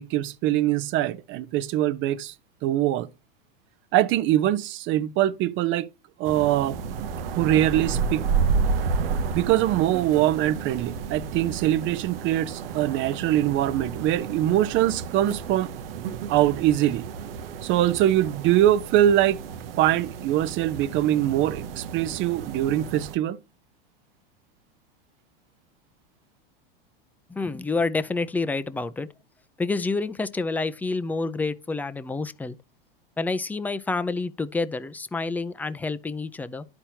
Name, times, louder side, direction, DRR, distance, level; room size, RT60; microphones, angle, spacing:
voice 1, 0.0-2.3 2.6-3.1 3.9-5.9 6.2-6.8 7.4-8.2 9.3-15.7 16.3-17.1 17.6-19.4 19.8-23.4, right 13 dB, 40° right, 0.8 m, -23 dB
Kanyaka Ruin, 6.3-23.2, right 5 dB, 75° right, 0.9 m, -31 dB
voice 2, 27.3-29.1 29.6-32.6 33.2-36.6, left 3 dB, 5° left, 0.5 m, -28 dB
12.5 x 4.4 x 2.8 m
hypercardioid pair, 115°, 29 cm